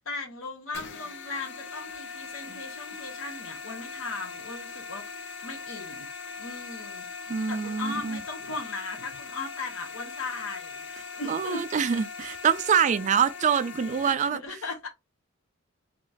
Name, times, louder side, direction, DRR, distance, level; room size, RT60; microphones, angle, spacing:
voice 1, 0.0-6.1 6.4-7.1 7.5-10.9 11.1-11.6 14.0-14.9, left 3 dB, 80° left, 0.9 m, -38 dB
sound 1, 0.7-14.1, left 5 dB, 60° left, 0.5 m, -40 dB
voice 2, 7.3-8.2 11.3-14.4, right 7 dB, 35° right, 0.3 m, -25 dB
2.9 x 2.4 x 3.9 m
head